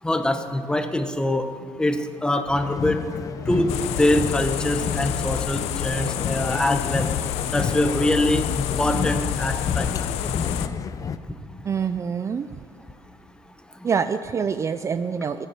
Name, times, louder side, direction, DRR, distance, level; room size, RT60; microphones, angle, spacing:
voice 1, 0.0-7.1 7.5-9.9 11.2-11.7 13.1-13.2 13.7-13.9, left 1 dB, 10° left, 8 dB, 0.9 m, -24 dB
sound 1, 2.5-11.2, left 6 dB, 35° left, 0.5 m, -30 dB
sound 2, 3.7-10.7, left 11 dB, 80° left, 0.7 m, -28 dB
voice 2, 11.6-12.5 13.8-15.5, right 6 dB, 30° right, 11 dB, 0.4 m, -25 dB
15.5 x 9.1 x 6.9 m, 2.1 s
cardioid pair, 125°, 11 cm